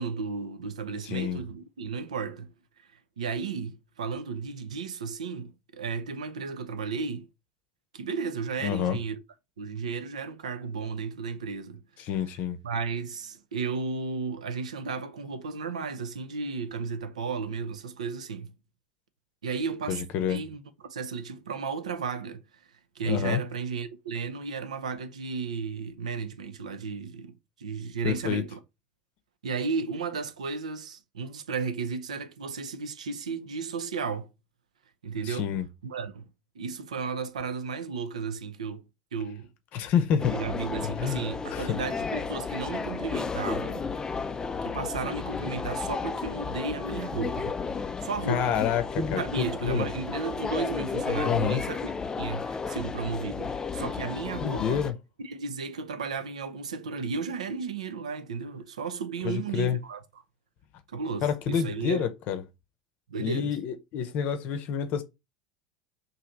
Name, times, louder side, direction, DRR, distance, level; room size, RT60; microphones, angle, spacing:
voice 1, 0.0-2.5 3.2-7.3 7.9-9.2 9.6-11.8 12.6-18.5 19.4-20.0 20.3-22.6 23.0-27.3 27.6-28.6 29.4-34.3 35.0-35.5 35.8-36.2 36.6-38.8 39.1-39.5 40.1-43.9 44.6-47.6 48.0-48.6 49.1-51.9 52.2-54.8 55.2-60.0 60.9-62.1 63.1-63.6, right 5 dB, 75° right, 0.5 m, -34 dB
voice 2, 1.0-1.4 8.6-9.0 12.0-12.6 19.9-20.4 23.0-23.4 28.0-28.4 35.3-35.6 39.7-40.3 40.8-41.2 41.5-41.8 48.3-49.9 51.2-51.6 54.4-54.9 59.2-59.8 61.2-62.4 63.2-65.0, left 8 dB, 50° left, 0.7 m, -28 dB
sound 1, 40.2-54.9, left 5 dB, 20° left, 0.4 m, -33 dB
3.2 x 2.6 x 3.9 m
figure-of-eight pair, 70°, 4 cm